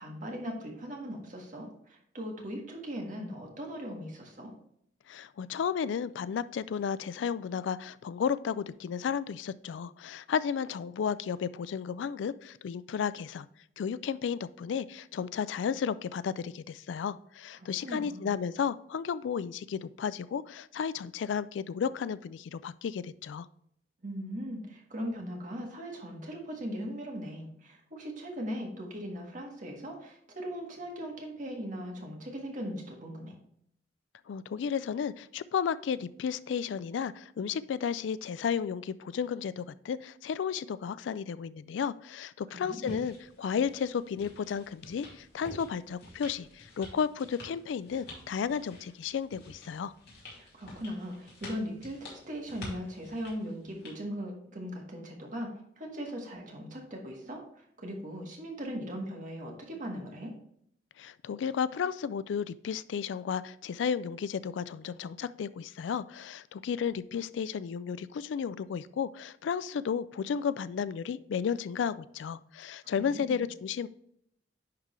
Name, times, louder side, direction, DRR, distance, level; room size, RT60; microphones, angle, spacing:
voice 1, 0.0-4.5 17.6-18.4 24.0-33.4 42.5-42.9 50.4-60.3 72.8-73.4, equal, 45° right, 1 dB, 1.6 m, -39 dB
voice 2, 5.1-13.5 13.8-23.5 34.3-49.9 61.0-73.9, left 7 dB, 85° left, 16 dB, 0.3 m, -33 dB
sound 1, 42.8-54.0, left 1 dB, 60° left, 2.3 m, -49 dB
10.5 x 3.7 x 3.2 m, 0.70 s
head